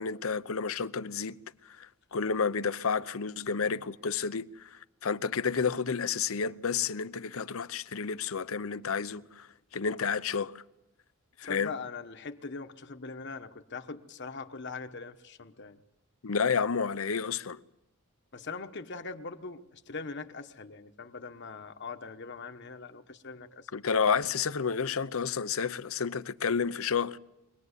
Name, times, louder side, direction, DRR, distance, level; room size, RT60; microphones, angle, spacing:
voice 1, 0.0-1.4 1.6-10.6 11.4-11.7 16.2-17.6 23.7-27.2, left 6 dB, 75° left, 0.7 m, -31 dB
voice 2, 11.4-15.8 18.3-23.7, left 4 dB, 55° left, 1.2 m, -41 dB
24.5 x 19.5 x 8.3 m
head